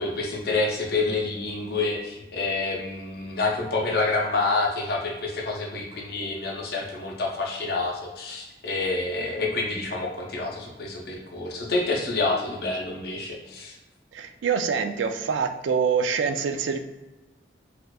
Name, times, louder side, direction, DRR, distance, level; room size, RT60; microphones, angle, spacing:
voice 1, 0.0-13.7, left 3 dB, 60° left, -1 dB, 0.6 m, -28 dB
voice 2, 14.1-16.8, right 6 dB, 90° right, 8 dB, 0.3 m, -25 dB
4.2 x 2.4 x 2.3 m, 1.1 s
head